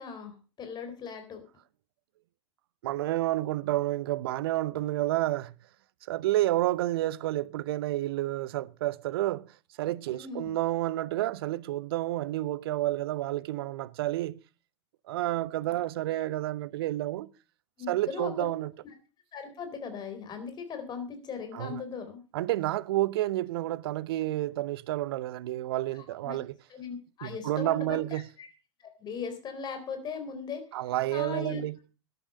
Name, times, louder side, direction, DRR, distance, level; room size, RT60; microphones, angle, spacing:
voice 1, 0.0-1.4 10.1-10.5 17.8-18.5 19.3-22.2 26.2-26.4 26.7-28.5 28.8-30.6 31.1-31.6, left 6 dB, 30° left, 4.1 m, -38 dB
voice 2, 2.8-5.5 6.1-9.5 9.8-14.4 15.1-17.3 17.9-18.7 21.5-21.8 22.3-26.5 27.2-28.3 30.7-31.8, right 15 dB, 55° right, 0.7 m, -30 dB
14.0 x 10.5 x 5.2 m
figure-of-eight pair, 90°, 15 cm